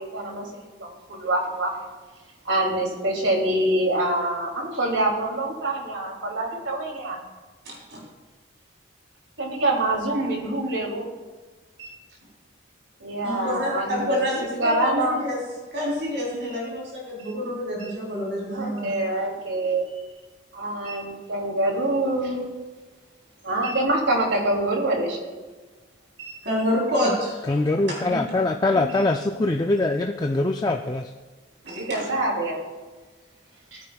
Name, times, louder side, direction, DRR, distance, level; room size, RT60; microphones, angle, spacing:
voice 1, 0.0-1.9 2.4-7.2 9.4-11.1 11.8-11.9 13.0-14.2 14.6-15.2 18.5-19.9 20.5-22.4 23.4-25.3 26.2-26.4 28.0-28.2 28.6-29.0 31.7-32.6 33.7-33.8, right 1 dB, 85° right, 0 dB, 2.7 m, -26 dB
voice 2, 7.7-8.0 13.2-15.4 15.7-18.9 26.4-27.4 31.6-32.0, equal, 65° right, -4 dB, 3.6 m, -27 dB
voice 3, 27.5-31.0, left 2 dB, 20° left, 3 dB, 0.4 m, -23 dB
19.5 x 9.5 x 2.3 m, 1.3 s
head